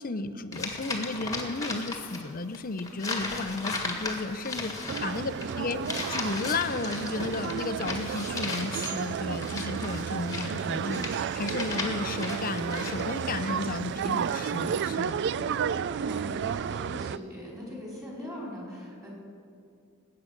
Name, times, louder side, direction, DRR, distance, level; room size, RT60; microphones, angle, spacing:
voice 1, 0.0-5.8 6.1-15.2, left 3 dB, 40° left, 11 dB, 0.6 m, -33 dB
sound 1, 0.5-2.3 2.5-13.4, left 3 dB, 15° left, 1.7 m, -36 dB
sound 2, 4.9-17.2, right 7 dB, 50° right, 0.3 m, -32 dB
voice 2, 5.1-5.8 15.2-19.1, left 1 dB, 15° right, -4 dB, 4.3 m, -41 dB
19.5 x 8.8 x 6.5 m, 2.4 s
head